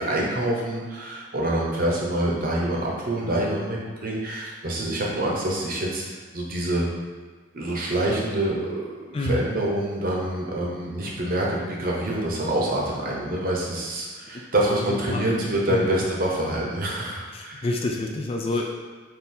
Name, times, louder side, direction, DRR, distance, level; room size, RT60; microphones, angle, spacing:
voice 1, 0.0-6.0 6.3-6.9 7.5-17.7, right 1 dB, 50° right, -3 dB, 0.8 m, -26 dB
voice 2, 9.1-9.4 14.7-16.0 17.3-18.6, left 2 dB, 30° left, 1 dB, 0.4 m, -29 dB
3.7 x 2.7 x 4.2 m, 1.4 s
head